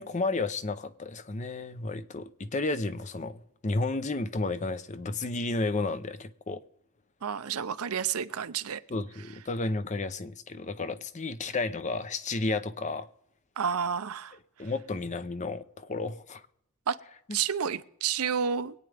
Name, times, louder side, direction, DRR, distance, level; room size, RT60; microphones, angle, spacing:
voice 1, 0.0-6.6 8.9-13.1 14.6-16.4, left 3 dB, 35° left, 0.6 m, -32 dB
voice 2, 7.2-8.8 13.6-14.4 16.9-17.0 17.3-18.7, right 7 dB, 90° right, 0.6 m, -30 dB
23.5 x 9.0 x 3.4 m
head